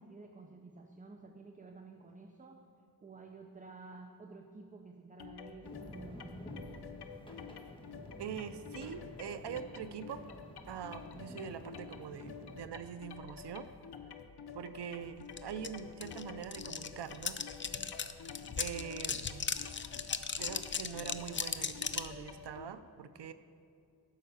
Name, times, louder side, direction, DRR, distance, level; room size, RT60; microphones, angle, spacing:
voice 1, 0.0-2.6 3.0-6.6, right 3 dB, 20° right, 4 dB, 0.5 m, -52 dB
sound 1, 5.2-22.7, left 7 dB, 75° left, 0.7 m, -50 dB
sound 2, 5.6-12.7, equal, 15° left, 1.2 m, -51 dB
voice 2, 8.2-10.2 10.7-13.7 14.5-17.4 18.6-19.5 20.4-23.3, right 7 dB, 90° right, 11 dB, 0.6 m, -43 dB
sound 3, 15.4-15.5 15.6-22.1, left 6 dB, 30° left, 0.4 m, -37 dB
12.5 x 5.4 x 6.8 m, 2.5 s
wide cardioid pair, 125°, 40 cm